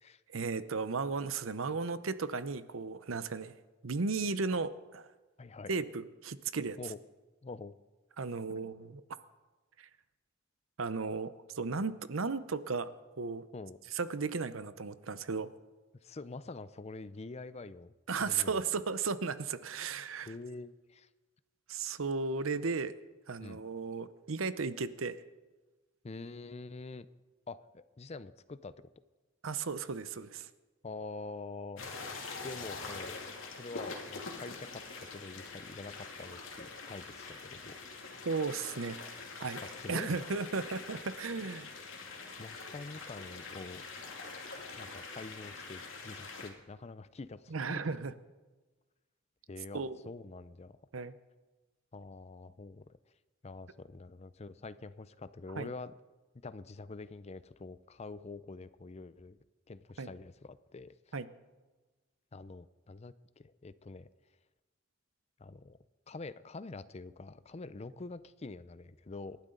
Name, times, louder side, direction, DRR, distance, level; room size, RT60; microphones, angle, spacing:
voice 1, 0.3-3.5 3.8-5.1 5.7-6.8 8.2-9.0 9.8-9.9 10.8-12.9 13.2-13.5 13.9-15.5 18.1-20.3 21.7-22.9 23.3-25.2 29.4-30.5 38.2-39.6 39.9-41.7 47.5-48.1 49.7-50.0 50.9-51.2 55.6-55.7 60.0-60.1 61.1-61.3, right 4 dB, 85° right, 13 dB, 0.8 m, -35 dB
voice 2, 5.4-5.7 6.8-7.0 7.4-7.7 8.5-8.7 13.5-13.8 16.0-18.5 20.3-21.1 23.4-23.6 26.0-27.1 27.5-28.9 30.8-31.8 32.4-33.1 33.5-37.8 38.0-38.2 39.7-40.2 42.1-43.8 44.7-47.8 49.5-50.8 51.9-52.8 53.4-55.9 56.4-59.4 59.7-61.1 62.3-64.1 65.4-65.8 66.1-69.4, left 3 dB, 35° left, 15 dB, 0.5 m, -46 dB
sound 1, 31.8-46.5, left 4 dB, 75° left, 2.5 m, -45 dB
28.0 x 12.0 x 3.9 m, 1.2 s
head